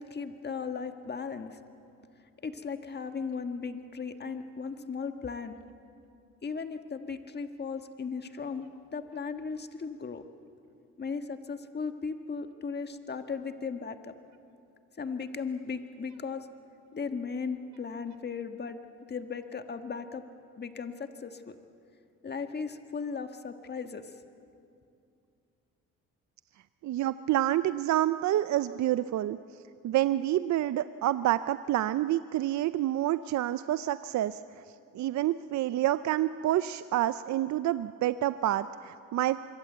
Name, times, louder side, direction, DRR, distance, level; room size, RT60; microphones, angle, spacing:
voice 1, 0.0-1.6 2.4-5.5 6.4-8.7 8.9-10.2 11.0-14.1 15.0-16.5 16.9-18.8 19.1-20.2 20.6-21.6 22.2-24.2, left 5 dB, 35° left, 7 dB, 1.6 m, -36 dB
voice 2, 26.8-29.4 29.8-34.4 34.9-39.4, right 13 dB, 65° right, 13 dB, 0.6 m, -28 dB
25.0 x 23.0 x 8.0 m, 2.6 s
cardioid pair, 90°, 30 cm